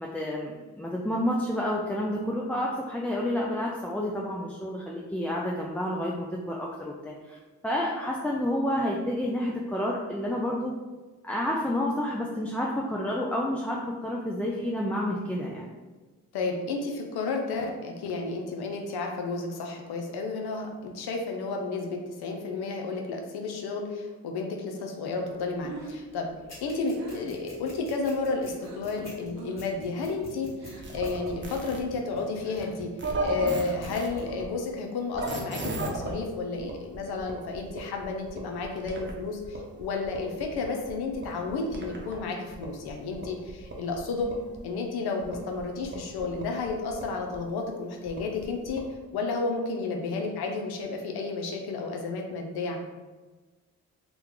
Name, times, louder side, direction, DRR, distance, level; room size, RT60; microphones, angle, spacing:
voice 1, 0.0-10.7 11.2-15.7, left 1 dB, 5° left, -3 dB, 0.4 m, -30 dB
voice 2, 16.3-26.3 26.6-32.9 33.2-44.3 44.6-48.8 49.1-52.8, left 3 dB, 70° left, 2 dB, 0.6 m, -32 dB
Breathing, 25.6-29.0 29.3-29.8 30.0-31.1 31.4-34.0, right 3 dB, 85° right, 0.7 m, -44 dB
sound 1, 26.5-33.0 33.3-33.9 34.2-34.3, left 1 dB, 40° left, 1.4 m, -46 dB
sound 2, 30.8-31.8 33.0-34.4 35.1-36.1 36.6-39.1 39.4-42.2 42.5-44.6 45.2-47.4 48.1-48.9, right 2 dB, 30° right, 0.8 m, -37 dB
2.9 x 2.3 x 3.6 m, 1.3 s
hypercardioid pair, 45°, 39 cm